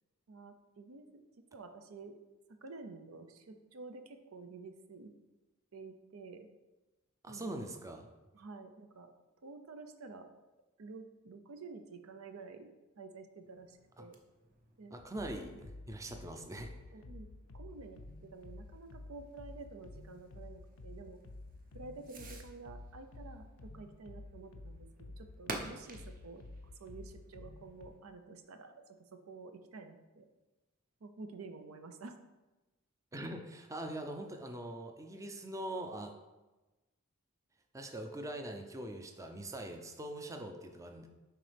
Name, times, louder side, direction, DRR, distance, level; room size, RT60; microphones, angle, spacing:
voice 1, 0.3-2.1 2.5-5.1 5.7-6.5 7.3-7.6 8.3-9.1 9.4-10.3 10.8-12.7 13.0-14.2 14.8-14.9 16.9-17.3 17.5-21.2 21.7-26.4 26.8-30.3 31.0-32.2, right 3 dB, 80° right, 7 dB, 0.6 m, -50 dB
voice 2, 7.2-8.1 14.0-14.1 14.9-16.7 33.1-36.1 37.7-41.1, right 1 dB, 15° right, 4 dB, 0.5 m, -42 dB
Fireworks, 13.4-28.0, right 2 dB, 40° right, 0.8 m, -52 dB
sound 1, 15.0-27.9, left 2 dB, 90° left, 0.5 m, -51 dB
10.5 x 3.8 x 3.4 m, 1.1 s
head